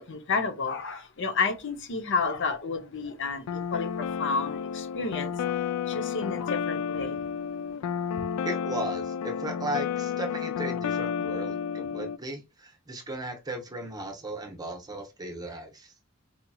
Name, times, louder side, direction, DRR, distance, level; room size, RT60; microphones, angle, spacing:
voice 1, 0.0-5.5 5.9-7.2, left 4 dB, 60° left, 0.7 m, -31 dB
sound 1, 3.5-12.2, left 7 dB, 80° left, 0.3 m, -31 dB
voice 2, 8.4-15.9, right 1 dB, 20° right, 0.9 m, -36 dB
4.3 x 2.8 x 2.3 m
head